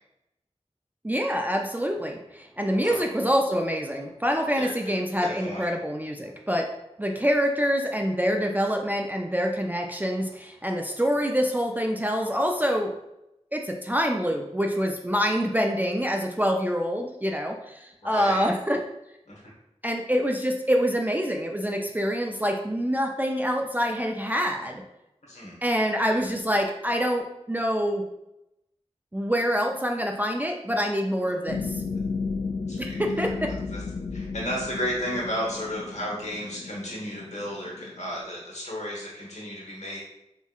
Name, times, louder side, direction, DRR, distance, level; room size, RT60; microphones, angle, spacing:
voice 1, 1.0-6.7 7.0-12.9 13.5-18.8 19.8-24.8 25.6-28.0 29.1-31.8 32.8-33.5, equal, 15° right, 1 dB, 0.3 m, -26 dB
voice 2, 5.2-5.7 18.0-18.5 19.3-19.5 25.2-25.6 26.1-26.2 31.2-31.3 32.7-33.3 33.7-33.8 34.1-40.0, equal, 80° left, -4 dB, 1.0 m, -33 dB
sound 1, 31.5-38.2, left 4 dB, 55° left, 0.4 m, -34 dB
4.3 x 2.7 x 2.3 m, 0.87 s
wide cardioid pair, 65°, 12 cm